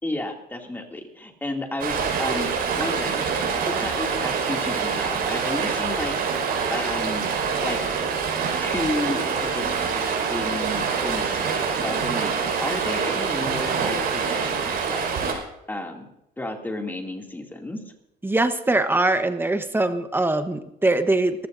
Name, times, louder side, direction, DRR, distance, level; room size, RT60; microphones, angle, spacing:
voice 1, 0.0-3.2 3.6-6.1 6.7-7.8 8.6-10.0 10.3-15.1 15.7-16.1 16.4-17.8, left 1 dB, 10° left, 1 dB, 2.5 m, -32 dB
Stream, 1.8-15.3, right 5 dB, 65° right, 5.3 m, -25 dB
voice 2, 18.2-21.5, right 2 dB, 10° right, 9 dB, 1.1 m, -22 dB
25.5 x 15.5 x 2.7 m, 0.85 s
cardioid pair, 110°, 17 cm